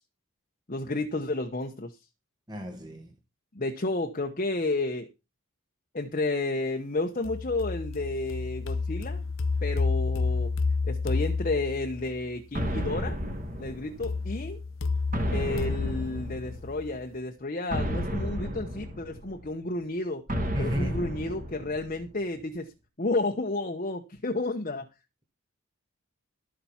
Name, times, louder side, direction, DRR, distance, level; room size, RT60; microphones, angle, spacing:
voice 1, 0.7-2.0 3.5-5.1 5.9-9.2 9.6-10.5 10.8-13.2 13.6-14.6 15.3-20.2 20.6-22.7 23.0-24.9, left 2 dB, 35° left, 1.0 m, -31 dB
voice 2, 2.5-3.1 20.5-21.0, right 1 dB, 20° right, 1.3 m, -33 dB
sound 1, 7.2-12.2 14.0-17.0, left 4 dB, 65° left, 0.9 m, -30 dB
sound 2, 12.5-14.3 15.1-16.8 17.7-19.5 20.3-22.1, equal, 40° right, 2.6 m, -32 dB
12.5 x 7.2 x 5.7 m
head